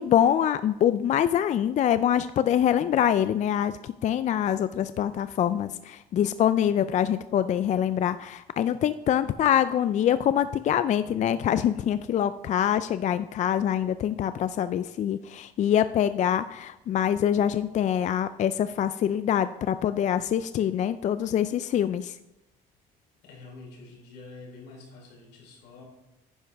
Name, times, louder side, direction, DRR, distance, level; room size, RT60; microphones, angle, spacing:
voice 1, 0.0-22.2, left 10 dB, 45° left, 13 dB, 0.4 m, -25 dB
voice 2, 23.2-25.8, left 3 dB, 90° left, 0 dB, 3.6 m, -46 dB
10.5 x 9.9 x 3.4 m, 0.91 s
cardioid pair, 110°, 17 cm